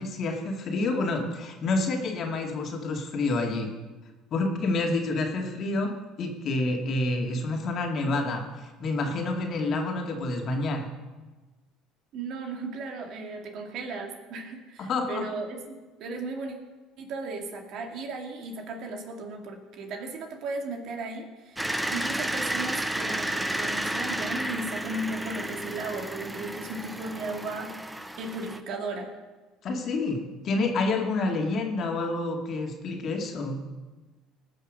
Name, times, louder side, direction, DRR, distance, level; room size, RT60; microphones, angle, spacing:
voice 1, 0.0-3.7 4.3-10.8 14.8-15.3 29.6-30.2 30.4-33.6, left 2 dB, 50° left, 2 dB, 2.4 m, -28 dB
voice 2, 12.1-16.6 17.0-29.1, right 3 dB, 60° right, 3 dB, 2.3 m, -36 dB
sound 1, 21.6-28.6, right 1 dB, 10° right, 0.9 m, -32 dB
19.0 x 6.5 x 6.5 m, 1.3 s
hypercardioid pair, 70°, 0 cm